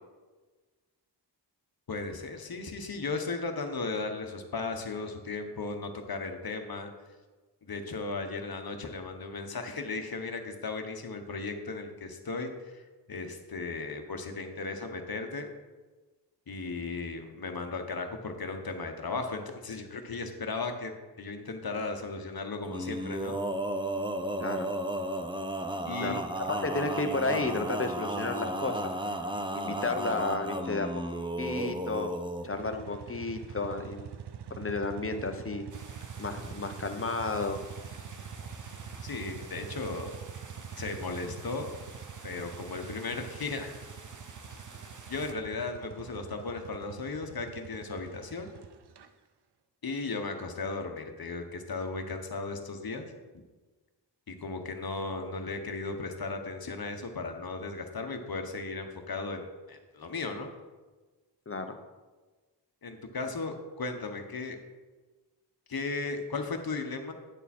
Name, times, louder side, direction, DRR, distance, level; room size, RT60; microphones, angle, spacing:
voice 1, 1.9-6.9 7.6-12.8 13.1-15.5 16.5-20.9 21.2-23.4 25.9-26.2 39.0-40.2 40.8-41.7 42.2-43.7 45.1-48.5 49.8-53.1 54.3-60.5 62.8-64.6 65.7-67.1, left 3 dB, 55° left, 5 dB, 1.2 m, -36 dB
Male singing, 22.7-32.5, right 1 dB, 10° right, 0.6 m, -34 dB
voice 2, 24.4-24.7 26.0-28.9 29.5-31.0 31.4-32.1 32.4-34.1 34.6-35.6 36.2-37.6 61.5-61.8, left 3 dB, 30° left, 6 dB, 0.9 m, -32 dB
sound 1, 32.4-49.1, right 7 dB, 65° right, 0.7 m, -45 dB
sound 2, 35.7-45.3, right 3 dB, 45° right, 1.0 m, -50 dB
10.0 x 6.9 x 4.3 m, 1.3 s
wide cardioid pair, 100°, 42 cm